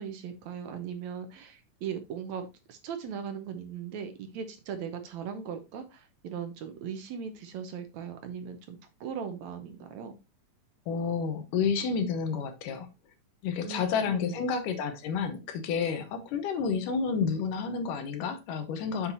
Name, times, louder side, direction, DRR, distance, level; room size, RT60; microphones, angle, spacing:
voice 1, 0.0-10.1 13.6-13.8 14.0-14.4, right 7 dB, 70° right, 2.0 m, -39 dB
voice 2, 10.9-12.9 13.4-19.1, left 6 dB, 80° left, 2.6 m, -30 dB
7.3 x 6.9 x 2.7 m
omnidirectional pair, 3.7 m